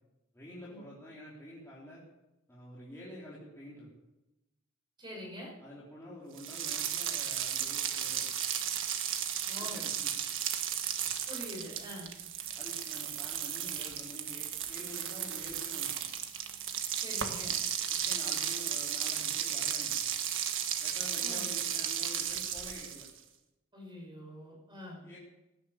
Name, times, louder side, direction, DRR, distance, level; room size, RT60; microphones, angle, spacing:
voice 1, 0.3-2.0 2.5-3.9 5.6-8.3 9.5-10.1 12.5-15.9 17.9-20.0 20.8-23.1 25.0-25.2, left 1 dB, 15° left, -8 dB, 3.8 m, -48 dB
voice 2, 5.0-5.5 9.5-9.9 11.3-12.1 17.0-17.6 21.2-21.5 23.7-25.0, equal, 20° right, 0 dB, 5.8 m, -45 dB
sound 1, 6.4-23.2, right 9 dB, 65° right, 1.6 m, -34 dB
18.5 x 10.0 x 7.3 m, 0.97 s
head